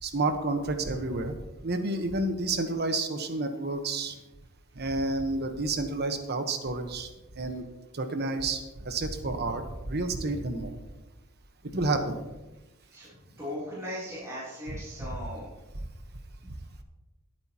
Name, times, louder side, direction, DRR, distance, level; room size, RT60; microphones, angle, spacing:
voice 1, 0.0-1.3 1.6-4.2 4.7-7.1 7.3-7.6 7.9-10.8 11.7-12.2 15.0-15.1, right 2 dB, 50° right, 7 dB, 1.2 m, -30 dB
voice 2, 13.4-15.5, left 1 dB, 15° right, -9 dB, 3.3 m, -38 dB
19.5 x 8.9 x 2.9 m, 1.1 s
head